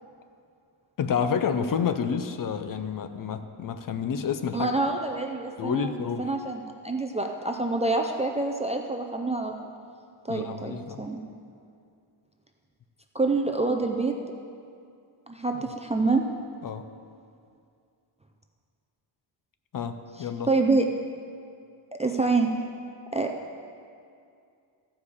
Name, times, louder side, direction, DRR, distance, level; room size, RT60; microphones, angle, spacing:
voice 1, 1.0-4.7 5.6-6.3 10.3-11.1 16.6-16.8 19.7-20.5, left 7 dB, 45° left, 9 dB, 0.6 m, -29 dB
voice 2, 4.5-9.7 10.3-11.2 13.1-14.1 15.3-16.3 20.5-20.9 21.9-22.5 23.1-23.3, right 3 dB, 15° right, 3 dB, 0.4 m, -26 dB
14.5 x 4.9 x 7.1 m, 2.4 s
wide cardioid pair, 160°, 47 cm